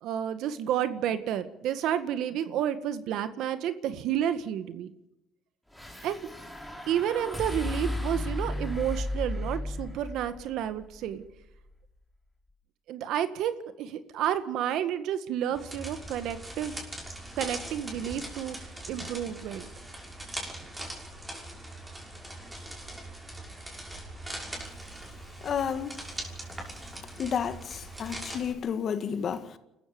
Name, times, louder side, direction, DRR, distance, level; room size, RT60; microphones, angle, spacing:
voice 1, 0.0-4.9 6.0-6.2 6.9-11.2 12.9-16.7 17.4-18.6 18.9-19.7, right 10 dB, 75° right, 1.8 m, -30 dB
sound 1, 5.7-12.1, left 1 dB, ahead, 4.6 m, -35 dB
sound 2, 15.5-28.5, right 1 dB, 15° right, 6.1 m, -41 dB
voice 2, 25.4-26.0 27.2-29.6, left 7 dB, 50° left, 2.0 m, -31 dB
29.5 x 14.5 x 7.1 m
cardioid pair, 95°, 0 cm